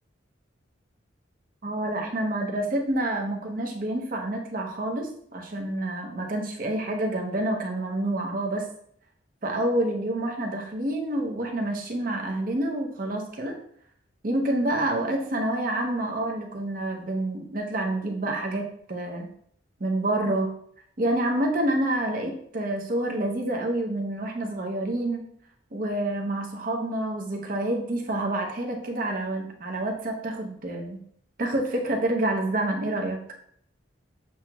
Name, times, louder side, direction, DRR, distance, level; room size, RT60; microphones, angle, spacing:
voice 1, 1.6-8.6 9.4-13.6 14.2-19.3 19.8-20.5 21.0-25.2 25.7-31.0 31.4-33.2, right 1 dB, 45° right, 1 dB, 0.7 m, -28 dB
7.4 x 2.9 x 2.3 m, 0.66 s
head